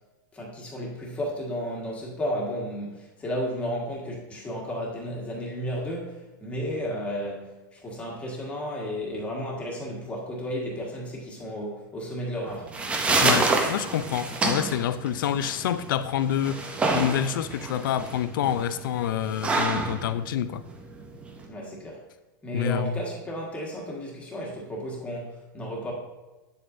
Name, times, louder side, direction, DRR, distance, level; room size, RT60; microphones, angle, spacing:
voice 1, 0.3-12.7 21.5-22.0 22.4-25.9, equal, 10° left, 1.6 m, -33 dB
sound 1, 12.5-21.5, right 3 dB, 10° right, 0.6 m, -28 dB
voice 2, 13.2-20.6 22.5-23.0, left 10 dB, 70° left, 0.5 m, -27 dB
8.5 x 7.7 x 2.6 m
supercardioid pair, 165°, 12 cm